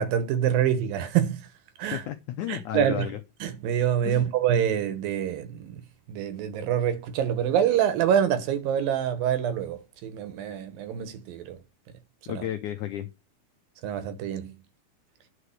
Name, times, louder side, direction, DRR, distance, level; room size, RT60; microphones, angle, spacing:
voice 1, 0.0-1.5 1.8-2.0 2.5-3.1 3.4-5.8 6.1-11.6 12.3-12.4 13.8-14.6, right 9 dB, 70° right, 2.7 m, -26 dB
voice 2, 1.9-3.2 4.1-4.3 12.3-13.1, left 12 dB, 85° left, 1.7 m, -33 dB
10.0 x 5.0 x 6.5 m
omnidirectional pair, 4.5 m